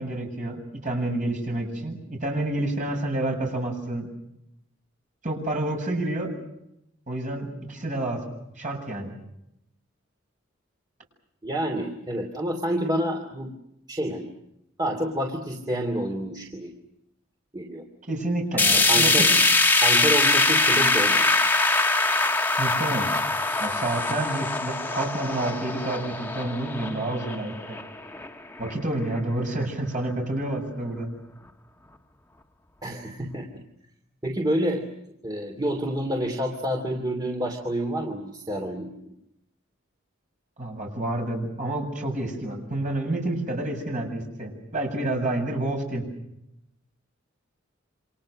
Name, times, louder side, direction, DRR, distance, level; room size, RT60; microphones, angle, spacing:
voice 1, 0.0-4.1 5.2-6.3 7.1-8.2 8.6-9.1 18.1-19.3 22.6-23.1 23.6-27.8 28.6-31.1 40.6-46.0, right 1 dB, 40° right, 1 dB, 7.7 m, -29 dB
voice 2, 11.4-13.5 13.9-14.3 14.8-16.7 17.5-17.8 18.7-19.3 19.8-21.3 32.8-33.5 34.2-34.8 35.2-39.1, right 1 dB, 20° right, 2 dB, 2.9 m, -28 dB
sound 1, 18.6-28.7 29.1-29.2 29.6-29.7 30.6-30.7, left 3 dB, 10° left, 1.3 m, -23 dB
28.5 x 26.5 x 6.5 m, 0.82 s
head